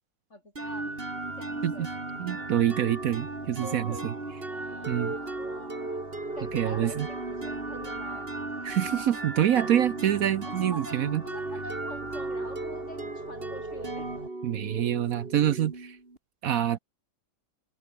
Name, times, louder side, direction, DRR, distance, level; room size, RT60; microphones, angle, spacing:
voice 1, 0.3-1.1 1.4-1.9 3.6-4.1 4.5-6.0 6.3-8.3 8.6-8.7 10.5-14.1, left 1 dB, 40° left, 7.9 m, -46 dB
sound 1, 0.6-16.2, right 2 dB, 30° right, 3.8 m, -36 dB
voice 2, 2.2-4.1 4.9-5.1 6.5-7.1 8.6-11.2 14.4-16.0 16.4-16.8, right 11 dB, 60° right, 1.0 m, -26 dB
omnidirectional pair, 2.0 m